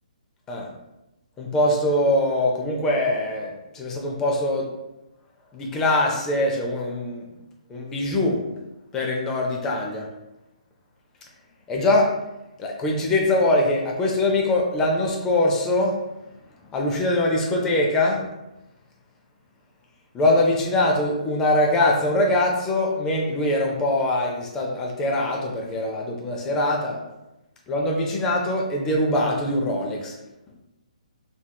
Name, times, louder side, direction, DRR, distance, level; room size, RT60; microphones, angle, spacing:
voice 1, 1.4-4.7 5.5-7.3 7.7-8.4 8.9-10.1 11.7-12.1 12.6-16.0 16.7-18.2 20.1-27.0 27.7-30.2, left 1 dB, 15° left, -1 dB, 0.5 m, -22 dB
3.2 x 2.8 x 2.3 m, 0.94 s
hypercardioid pair, 150°, 4 cm